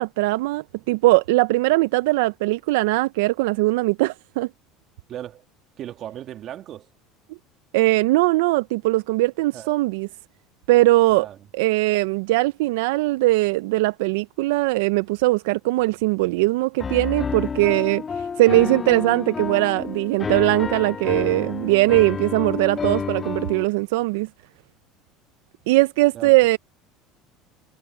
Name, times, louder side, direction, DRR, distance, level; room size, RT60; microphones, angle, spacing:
voice 1, 0.0-4.5 7.7-10.1 10.7-11.3 11.5-24.3 25.7-26.6, right 20 dB, 80° right, 0.4 m, -20 dB
voice 2, 5.1-5.4 5.8-6.9 9.5-9.7 11.1-11.4 26.1-26.3, right 11 dB, 50° right, 2.1 m, -36 dB
Piano, 16.8-23.6, left 6 dB, 30° left, 1.7 m, -29 dB
supercardioid pair, 95°, 0 cm